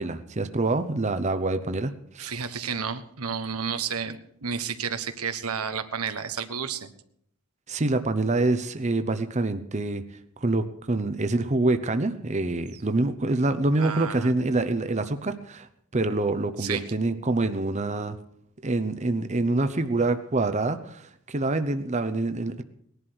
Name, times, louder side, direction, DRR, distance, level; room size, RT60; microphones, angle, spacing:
voice 1, 0.0-2.3 7.7-10.0 10.4-18.2 18.6-22.6, right 2 dB, 30° right, 9 dB, 0.8 m, -26 dB
voice 2, 2.2-6.9 12.7-12.8 13.8-14.3 16.6-16.9, right 6 dB, 90° right, 9 dB, 1.3 m, -31 dB
19.0 x 11.5 x 6.2 m, 0.71 s
head